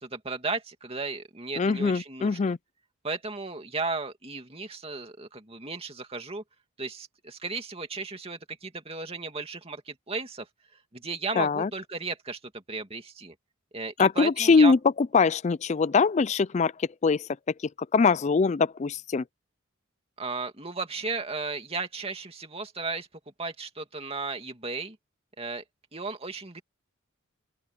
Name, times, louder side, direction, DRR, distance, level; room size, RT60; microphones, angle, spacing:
voice 1, 0.0-2.5 3.0-6.4 6.8-10.5 10.9-13.3 13.7-14.7 20.2-23.1 23.4-25.0 25.4-25.6 25.9-26.6, right 3 dB, 25° right, 2.4 m, -35 dB
voice 2, 1.6-2.6 11.4-11.7 14.0-17.3 17.9-19.2, left 4 dB, 30° left, 0.3 m, -22 dB
open air
head